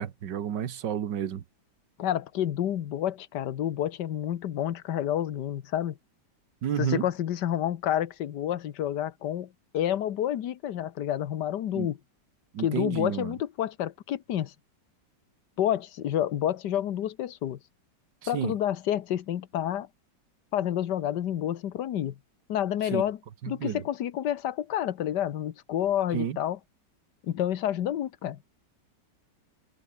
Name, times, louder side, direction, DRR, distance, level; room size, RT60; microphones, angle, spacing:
voice 1, 0.0-1.4 6.6-7.1 11.7-11.9 12.5-13.4 18.2-18.6 22.9-23.0 23.4-23.8 26.1-26.4, right 9 dB, 75° right, 1.9 m, -31 dB
voice 2, 2.0-6.0 6.8-12.0 12.6-14.5 15.6-17.6 18.3-19.9 20.5-22.2 22.5-23.2 23.5-26.6 27.2-28.4, left 11 dB, 70° left, 1.6 m, -29 dB
omnidirectional pair, 1.9 m